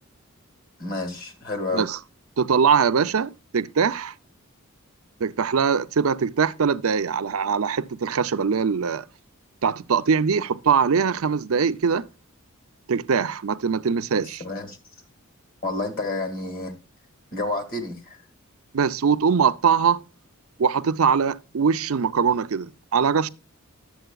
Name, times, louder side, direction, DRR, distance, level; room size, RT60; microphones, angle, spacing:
voice 1, 0.8-1.8 14.2-14.8 15.6-16.7 17.3-18.2, left 2 dB, 45° left, 2.1 m, -30 dB
voice 2, 2.4-4.1 5.2-9.0 9.6-12.1 12.9-14.4 18.7-20.0 20.6-23.3, right 6 dB, 75° right, 0.5 m, -22 dB
11.5 x 7.8 x 2.3 m
head